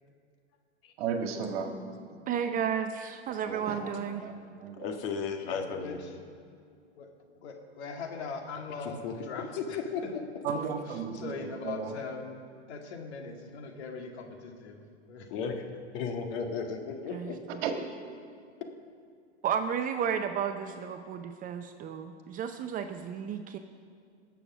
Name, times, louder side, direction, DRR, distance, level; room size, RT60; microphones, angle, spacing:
voice 1, 1.0-2.0 3.4-4.8 10.4-11.9 17.6-17.7, right 6 dB, 60° right, 4 dB, 1.8 m, -35 dB
voice 2, 2.3-4.3 17.1-17.6 19.4-23.6, right 8 dB, 25° right, 7 dB, 0.6 m, -33 dB
voice 3, 4.8-6.0 8.8-9.1 9.5-9.6 9.9-10.2 15.3-17.4, left 5 dB, 55° left, 4 dB, 1.7 m, -34 dB
voice 4, 5.4-6.2 7.0-7.1 7.4-10.1 10.7-12.4 12.7-15.3, left 4 dB, 70° left, 2 dB, 2.2 m, -41 dB
19.0 x 7.1 x 6.1 m, 2.3 s
hypercardioid pair, 115°, 34 cm